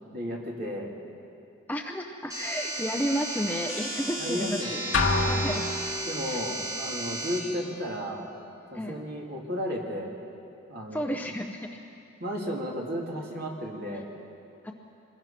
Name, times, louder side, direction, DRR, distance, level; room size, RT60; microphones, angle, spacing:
voice 1, 0.1-1.0 4.2-4.8 6.1-8.3 8.7-10.1 10.7-11.2 12.2-14.1, equal, 45° right, -2 dB, 3.2 m, -33 dB
voice 2, 1.7-4.6 5.3-5.6 6.3-6.4 8.7-9.0 10.9-11.7 14.6-14.7, equal, 10° left, 3 dB, 0.7 m, -31 dB
sound 1, 2.3-7.4, right 1 dB, 15° right, 4.9 m, -34 dB
sound 2, 4.9-6.4, left 3 dB, 65° left, 1.8 m, -27 dB
25.5 x 21.0 x 5.9 m, 2.6 s
head